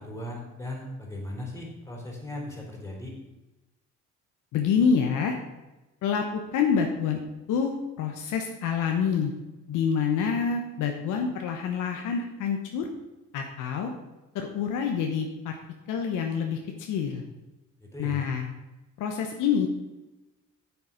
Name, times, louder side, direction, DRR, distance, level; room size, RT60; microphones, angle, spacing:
voice 1, 0.0-3.1 17.8-18.3, left 1 dB, 10° left, -1 dB, 3.5 m, -37 dB
voice 2, 4.5-5.4 6.0-7.2 7.5-9.3 9.7-12.9 13.3-13.9 14.3-15.6 15.9-17.2 18.0-18.5 19.0-19.7, left 6 dB, 90° left, 3 dB, 1.0 m, -27 dB
8.3 x 7.1 x 5.1 m, 1.1 s
cardioid pair, 90°, 30 cm